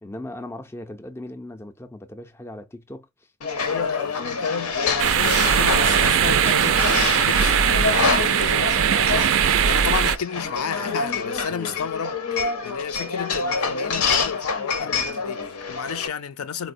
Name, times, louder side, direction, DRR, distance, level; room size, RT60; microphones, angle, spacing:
voice 1, 0.0-3.1 11.5-11.8, left 1 dB, 10° left, 0.4 m, -38 dB
sound 1, 3.4-16.1, left 4 dB, 90° left, 0.8 m, -27 dB
voice 2, 3.5-9.3 9.6-12.2 12.6-16.7, left 7 dB, 75° left, 0.4 m, -32 dB
sound 2, 5.0-10.2, right 8 dB, 60° right, 0.3 m, -20 dB
4.1 x 2.1 x 2.5 m
head